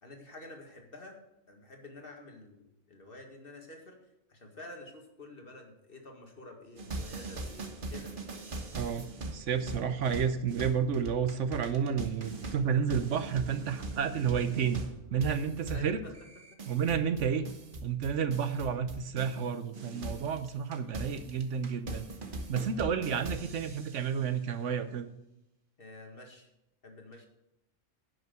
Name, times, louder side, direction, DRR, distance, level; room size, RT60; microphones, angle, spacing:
voice 1, 0.0-1.2 1.5-4.0 4.3-8.1 15.7-16.2 16.5-16.6 25.8-26.5 26.8-27.3, left 2 dB, 45° left, 2 dB, 2.0 m, -49 dB
sound 1, 6.8-19.5 19.7-24.1, right 2 dB, 45° right, 1.3 m, -41 dB
voice 2, 8.8-14.8 15.1-16.0 16.7-17.4 17.8-22.1 22.5-25.1, right 7 dB, 70° right, 11 dB, 1.1 m, -31 dB
10.5 x 6.5 x 7.7 m, 0.88 s
omnidirectional pair, 1.3 m